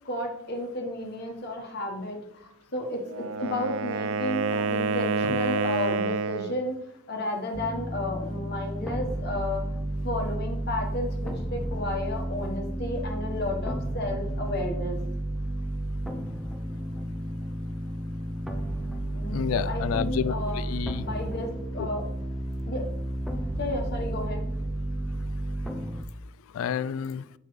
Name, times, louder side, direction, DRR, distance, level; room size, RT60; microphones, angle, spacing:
voice 1, 0.0-6.8 7.1-9.7 10.0-15.0 19.1-20.6 21.0-22.0 22.7-22.9 23.6-24.5, left 1 dB, 50° left, 1 dB, 1.2 m, -32 dB
Wind instrument woodwind instrument, 3.0-6.6, right 4 dB, 80° right, 0.4 m, -28 dB
sound 1, 7.5-26.0, right 1 dB, ahead, 0.5 m, -32 dB
voice 2, 19.3-21.1 21.8-21.9 26.5-27.3, left 8 dB, 75° left, 18 dB, 0.3 m, -30 dB
7.0 x 5.5 x 3.1 m, 0.75 s
head